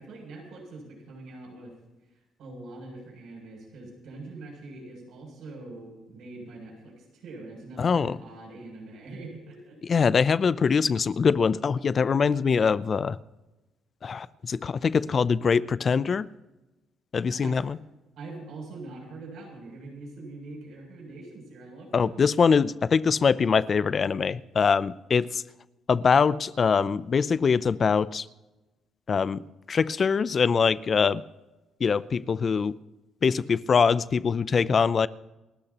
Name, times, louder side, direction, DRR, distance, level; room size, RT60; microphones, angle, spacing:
voice 1, 0.0-1.7 2.1-10.0 17.3-17.6 18.2-22.2, right 2 dB, 70° right, 0 dB, 7.3 m, -43 dB
voice 2, 7.8-8.2 9.9-13.2 14.0-16.3 17.1-17.8 21.9-25.4 25.9-28.3 29.1-31.2 31.8-32.7 33.2-35.1, left 6 dB, 40° left, 17 dB, 0.4 m, -23 dB
29.0 x 13.5 x 2.9 m, 1.1 s
cardioid pair, 115°, 0 cm